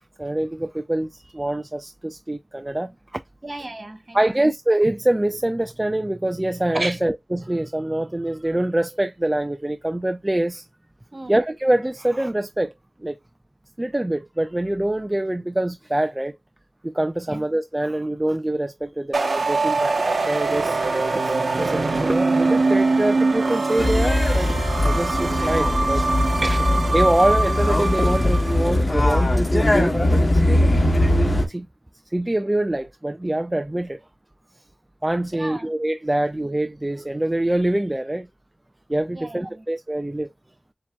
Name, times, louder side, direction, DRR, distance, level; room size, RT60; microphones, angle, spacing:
voice 1, 0.2-3.2 4.1-10.7 11.3-12.7 13.0-13.2 13.8-16.3 16.8-20.8 21.1-24.5 24.8-26.1 26.9-30.8 31.5-31.7 32.1-34.0 35.0-38.3 38.9-40.3, right 1 dB, 20° right, 0.3 m, -24 dB
voice 2, 3.4-4.4 6.7-7.0 11.1-11.4 17.3-17.4 26.4-26.7 35.3-35.7 39.1-39.6, right 2 dB, 40° right, 1.4 m, -32 dB
sound 1, 19.1-28.8, right 3 dB, 65° right, 0.8 m, -23 dB
sound 2, 23.8-31.5, left 1 dB, 35° left, 1.8 m, -20 dB
7.2 x 2.8 x 2.2 m
wide cardioid pair, 80°, 0 cm